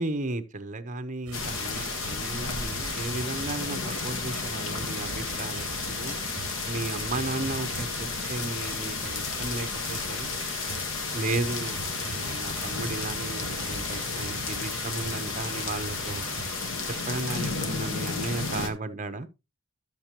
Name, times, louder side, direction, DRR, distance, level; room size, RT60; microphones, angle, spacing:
voice 1, 0.0-6.2 6.7-10.3 11.1-16.4 17.1-19.3, right 2 dB, 35° right, 0.9 m, -34 dB
sound 1, 1.3-18.7, left 4 dB, 65° left, 1.4 m, -32 dB
sound 2, 1.3-17.6, right 6 dB, 70° right, 0.7 m, -45 dB
12.0 x 6.7 x 2.9 m
head